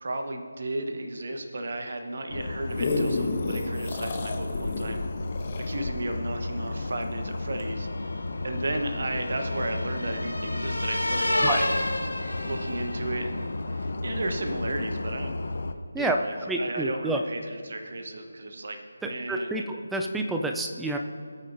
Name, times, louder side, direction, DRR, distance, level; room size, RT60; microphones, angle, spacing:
voice 1, 0.0-5.1 5.7-11.8 12.4-15.4 15.9-19.7, right 2 dB, 50° right, 5 dB, 1.1 m, -34 dB
sound 1, 2.3-15.7, left 2 dB, 55° left, 0.8 m, -33 dB
sound 2, 2.4-7.1 7.6-7.7, left 3 dB, 30° left, 1.1 m, -31 dB
sound 3, 7.9-13.3, left 1 dB, 85° left, 1.3 m, -31 dB
voice 2, 16.5-17.2 19.0-21.0, right 2 dB, 5° right, 2 dB, 0.5 m, -29 dB
19.0 x 8.6 x 2.7 m, 2.2 s
figure-of-eight pair, 155°, 0 cm